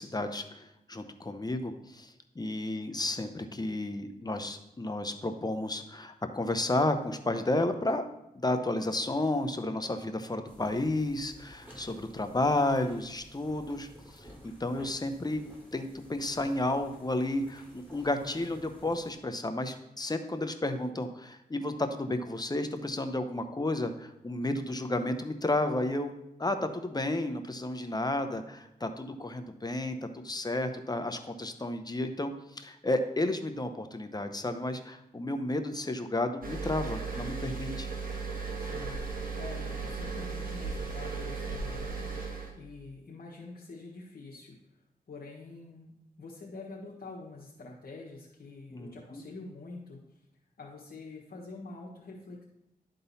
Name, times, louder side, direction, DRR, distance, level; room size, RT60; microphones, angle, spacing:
voice 1, 0.0-8.0 8.3-13.9 14.2-15.4 15.7-26.1 26.4-37.9 48.7-49.2, left 2 dB, 25° left, 7 dB, 0.8 m, -32 dB
sound 1, 10.4-19.1, equal, 15° right, 3.2 m, -52 dB
sound 2, 36.4-42.5, right 4 dB, 60° right, 1.7 m, -36 dB
voice 2, 38.5-44.6 45.1-45.9 46.2-50.0 50.6-52.4, left 3 dB, 70° left, -4 dB, 1.4 m, -46 dB
11.0 x 3.9 x 4.1 m, 0.87 s
cardioid pair, 55°, 16 cm